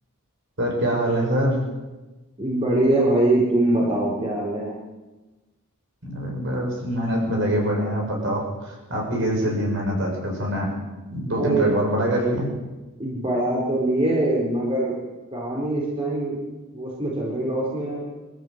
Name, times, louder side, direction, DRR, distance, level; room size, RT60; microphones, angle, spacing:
voice 1, 0.6-1.6 6.0-10.8 11.1-12.5, equal, 55° right, 0 dB, 6.7 m, -24 dB
voice 2, 2.4-4.7 11.3-11.6 13.0-14.9 15.3-16.4 16.7-18.1, right 1 dB, 25° right, -3 dB, 4.4 m, -23 dB
24.0 x 14.0 x 8.1 m, 1.2 s
head